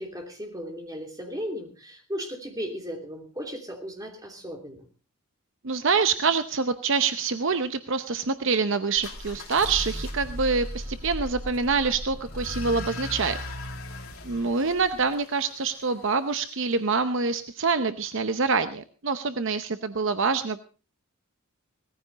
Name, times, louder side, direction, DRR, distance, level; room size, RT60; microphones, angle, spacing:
voice 1, 0.0-4.9, equal, 15° right, 2 dB, 3.0 m, -36 dB
voice 2, 5.6-13.4 14.2-20.6, right 4 dB, 60° right, 10 dB, 0.8 m, -26 dB
sound 1, 9.0-15.9, left 1 dB, 70° left, 3.7 m, -36 dB
17.5 x 14.5 x 4.0 m, 0.35 s
head